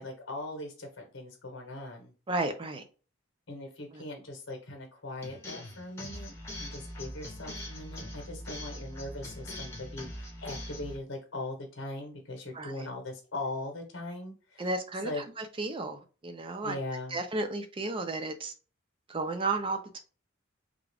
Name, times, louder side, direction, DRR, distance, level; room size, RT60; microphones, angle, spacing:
voice 1, 0.0-2.1 3.5-14.7 15.0-15.3 16.6-17.2, left 2 dB, 75° left, 0.9 m, -40 dB
voice 2, 2.3-2.8 3.9-4.0 12.5-12.9 14.6-16.8 17.1-18.5 19.1-20.0, right 2 dB, 25° right, 0.4 m, -33 dB
sound 1, 5.2-11.0, left 1 dB, 15° left, 0.7 m, -42 dB
3.6 x 2.3 x 3.3 m
head